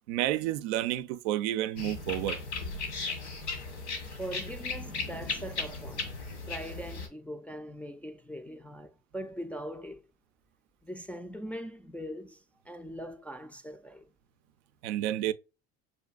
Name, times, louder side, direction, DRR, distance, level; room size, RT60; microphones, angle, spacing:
voice 1, 0.1-2.4 14.8-15.3, right 13 dB, 80° right, 0.5 m, -30 dB
sound 1, 1.8-7.1, left 4 dB, 90° left, 1.6 m, -36 dB
voice 2, 4.2-10.0 10.8-14.1, equal, 5° left, 0.3 m, -41 dB
6.7 x 2.5 x 2.3 m
hypercardioid pair, 80°, 33 cm